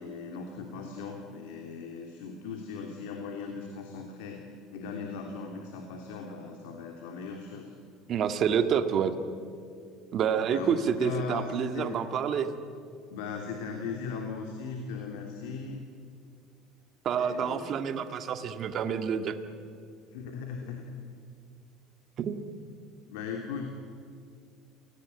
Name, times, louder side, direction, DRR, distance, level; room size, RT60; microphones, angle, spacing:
voice 1, 0.0-7.7 10.5-12.0 13.1-15.8 17.2-17.7 20.1-20.8 23.1-23.7, left 5 dB, 85° left, 2 dB, 3.2 m, -38 dB
voice 2, 8.1-9.1 10.1-12.5 17.0-19.4 22.2-22.4, right 7 dB, 40° right, 8 dB, 1.9 m, -28 dB
28.0 x 18.5 x 9.7 m, 2.4 s
cardioid pair, 130°, 0 cm